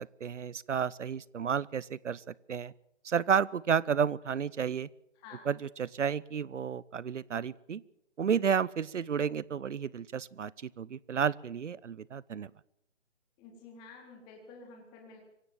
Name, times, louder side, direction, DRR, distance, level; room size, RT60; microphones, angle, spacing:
voice 1, 0.0-2.7 3.0-4.9 5.5-7.8 8.2-12.5, right 7 dB, 80° right, 23 dB, 0.8 m, -31 dB
voice 2, 5.2-5.5 13.4-15.2, left 4 dB, 15° left, 1 dB, 3.7 m, -50 dB
24.0 x 16.5 x 7.5 m, 0.78 s
hypercardioid pair, 165°, 36 cm